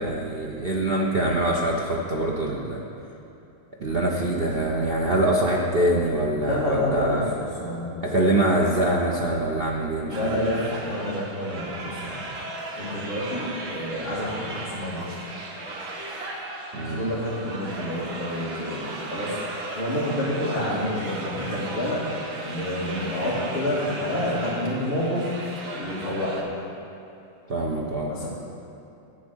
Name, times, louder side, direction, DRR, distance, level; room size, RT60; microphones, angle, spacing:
voice 1, 0.0-2.8 3.8-7.3 8.0-10.5 16.7-17.1 27.5-28.1, right 1 dB, 55° right, -2 dB, 0.6 m, -24 dB
voice 2, 6.4-8.0 8.2-8.3 10.0-12.3 12.8-15.1 16.7-22.0 22.4-25.4 25.7-26.4 28.1-28.3, left 1 dB, 30° left, -8 dB, 2.1 m, -29 dB
sound 1, 10.1-26.4, right 2 dB, 70° right, 2.1 m, -36 dB
11.5 x 7.5 x 6.3 m, 2.8 s
omnidirectional pair, 2.2 m